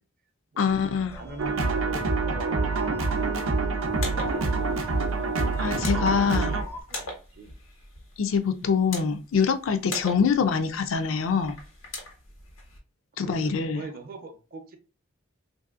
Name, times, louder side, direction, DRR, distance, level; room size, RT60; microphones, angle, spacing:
voice 1, 0.6-1.2 5.6-6.6 8.2-11.5 13.2-13.8, left 6 dB, 75° left, 0.4 m, -24 dB
sound 1, 0.7-6.8, equal, 15° left, 0.4 m, -42 dB
voice 2, 1.1-3.7 4.0-4.9 5.7-7.5 13.2-14.8, right 2 dB, 45° right, 0.6 m, -43 dB
sound 2, 1.4-6.6, right 3 dB, 90° right, 0.5 m, -26 dB
sound 3, 3.8-12.8, left 2 dB, 90° left, 1.2 m, -42 dB
3.2 x 2.6 x 2.4 m
head